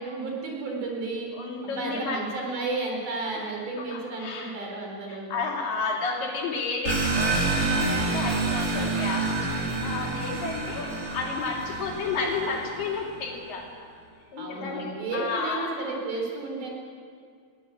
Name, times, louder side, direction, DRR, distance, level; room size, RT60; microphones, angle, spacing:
voice 1, 0.0-1.3 1.6-5.3 14.4-16.7, right 3 dB, 65° right, -1 dB, 5.5 m, -32 dB
voice 2, 1.3-2.2 3.4-3.5 3.8-4.5 5.1-13.7 14.3-15.7, left 4 dB, 75° left, -1 dB, 4.5 m, -32 dB
sound 1, 6.9-13.1, right 3 dB, 30° right, 2.6 m, -28 dB
22.0 x 16.0 x 8.0 m, 2.2 s
omnidirectional pair, 4.0 m